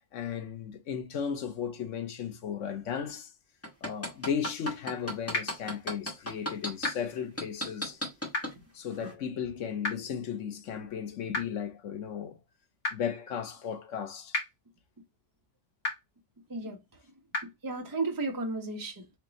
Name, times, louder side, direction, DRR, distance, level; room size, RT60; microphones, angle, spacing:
voice 1, 0.0-3.3 3.8-8.0 8.7-12.4 12.9-14.4, left 8 dB, 80° left, 1.1 m, -35 dB
sound 1, 3.6-6.9 7.4-8.5 9.0-9.1, equal, 10° left, 1.3 m, -33 dB
sound 2, 5.3-5.4 6.8-6.9 8.3-8.4 9.8-9.9 11.3-11.4 12.8-12.9 14.3-14.4 15.8-15.9 17.3-17.4, left 2 dB, 55° left, 1.7 m, -29 dB
voice 2, 17.4-19.1, right 3 dB, 20° right, 0.8 m, -34 dB
3.3 x 2.9 x 4.0 m
omnidirectional pair, 1.3 m